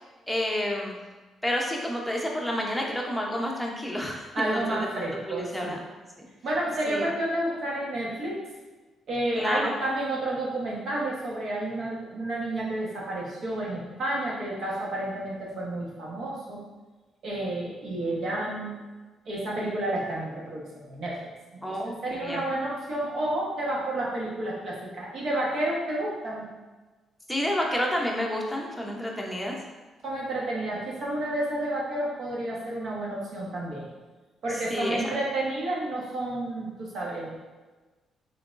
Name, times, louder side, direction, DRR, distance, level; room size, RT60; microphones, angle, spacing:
voice 1, 0.3-1.0 1.4-5.8 6.9-7.1 9.3-9.7 21.6-22.5 27.3-29.6 34.5-35.2, left 1 dB, 5° left, -1 dB, 0.7 m, -30 dB
voice 2, 4.3-5.7 6.4-8.4 9.1-16.6 17.2-18.7 19.2-21.2 21.5-26.5 30.0-33.8 34.4-37.4, right 1 dB, 65° right, -4 dB, 1.1 m, -30 dB
3.8 x 3.3 x 2.5 m, 1.2 s
cardioid pair, 90°, 0 cm